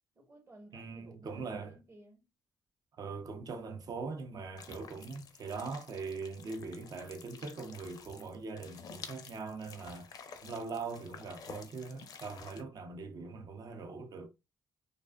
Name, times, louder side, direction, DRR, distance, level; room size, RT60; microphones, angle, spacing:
voice 1, 0.1-2.3, right 1 dB, 35° right, 0.9 m, -56 dB
voice 2, 0.7-1.7 3.0-10.1 10.4-14.3, right 4 dB, 55° right, 0.5 m, -41 dB
sound 1, 4.6-12.6, left 6 dB, 60° left, 0.5 m, -51 dB
2.4 x 2.3 x 2.2 m
supercardioid pair, 55°, 7 cm